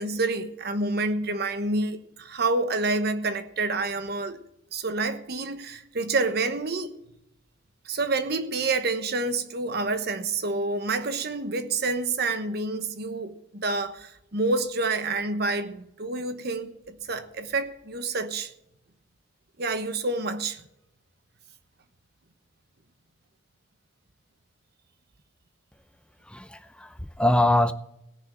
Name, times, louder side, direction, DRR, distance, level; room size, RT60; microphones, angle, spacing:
voice 1, 0.0-4.4 4.7-6.9 7.8-18.5 19.6-20.6, right 3 dB, 60° right, 1.1 m, -28 dB
voice 2, 26.3-27.7, left 1 dB, 5° left, 0.6 m, -23 dB
17.0 x 6.1 x 7.4 m
head